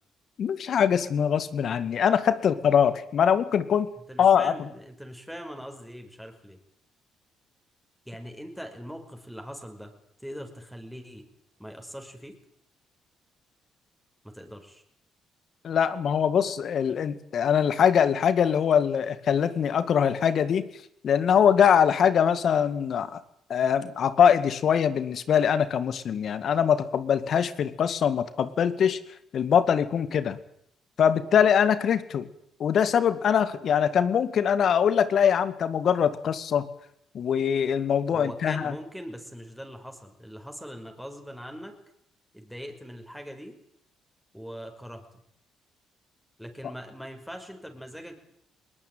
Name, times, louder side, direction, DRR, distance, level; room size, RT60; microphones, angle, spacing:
voice 1, 0.4-3.9 4.2-4.5 15.6-20.7 21.0-23.2 23.5-29.0 29.3-30.4 31.0-32.3 32.6-36.7 37.1-38.7, left 8 dB, 60° left, 13 dB, 2.0 m, -23 dB
voice 2, 4.1-6.6 8.1-9.9 10.2-11.3 11.6-12.4 14.3-14.8 38.1-41.7 42.3-43.6 44.3-45.0 46.4-48.1, equal, ahead, 4 dB, 5.6 m, -41 dB
21.0 x 19.5 x 9.4 m, 0.71 s
supercardioid pair, 70°, 0 cm